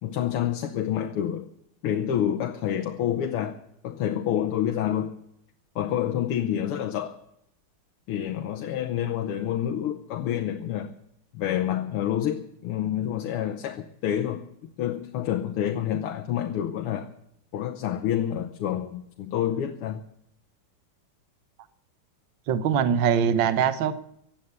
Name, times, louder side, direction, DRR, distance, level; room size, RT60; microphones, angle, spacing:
voice 1, 0.0-1.5 1.8-3.6 3.8-5.1 5.8-7.2 8.1-10.9 11.3-14.5 14.8-17.1 17.5-20.0, left 10 dB, 85° left, 6 dB, 1.8 m, -28 dB
voice 2, 22.5-24.0, right 8 dB, 65° right, 12 dB, 1.6 m, -22 dB
16.5 x 8.9 x 9.5 m, 0.75 s
omnidirectional pair, 2.4 m